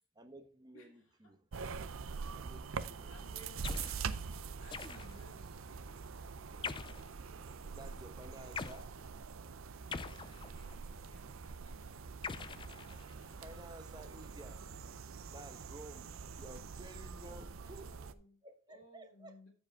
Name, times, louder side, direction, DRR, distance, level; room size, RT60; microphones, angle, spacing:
voice 1, 0.2-1.5 2.3-3.2 7.4-9.0 13.4-14.7 15.3-17.9 18.4-19.3, right 1 dB, 20° right, 1.0 m, -53 dB
sound 1, 1.5-18.1, right 5 dB, 65° right, 0.5 m, -45 dB
voice 2, 2.7-3.8 4.5-6.0 9.6-12.4 17.2-18.4 18.7-19.5, left 1 dB, 70° left, 3.1 m, -61 dB
sound 2, 3.6-4.0 4.7-5.3 6.6-7.1 8.6-8.8 9.9-10.8 12.2-13.3, left 5 dB, 20° left, 0.3 m, -43 dB
14.0 x 5.0 x 3.5 m
head